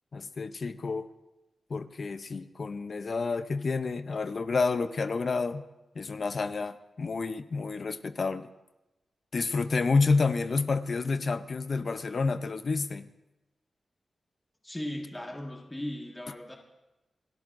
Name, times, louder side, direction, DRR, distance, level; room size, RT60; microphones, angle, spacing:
voice 1, 0.1-1.1 1.7-5.6 6.0-8.5 9.3-13.1, left 4 dB, 50° left, 11 dB, 0.6 m, -29 dB
voice 2, 14.6-16.6, left 1 dB, 15° left, 0 dB, 1.6 m, -37 dB
28.0 x 13.0 x 2.6 m, 1.0 s
wide cardioid pair, 110°, 0 cm